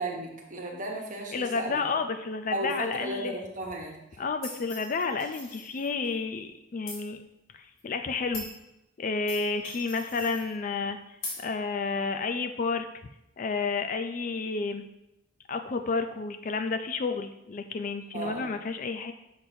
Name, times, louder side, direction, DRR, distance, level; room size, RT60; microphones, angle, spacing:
voice 1, 0.0-1.8 2.5-4.0 18.1-18.5, right 1 dB, 40° right, 0 dB, 1.1 m, -34 dB
voice 2, 1.3-3.4 4.2-7.2 7.5-8.5 9.0-11.0 11.4-12.9 13.4-14.8 15.5-19.1, left 4 dB, 40° left, 8 dB, 0.4 m, -31 dB
sound 1, 4.4-6.1 6.9-7.0 7.8-7.9 8.3-8.6 9.3-10.5 11.2-11.4, left 2 dB, 90° left, 2.4 m, -41 dB
6.9 x 5.9 x 2.7 m, 0.88 s
head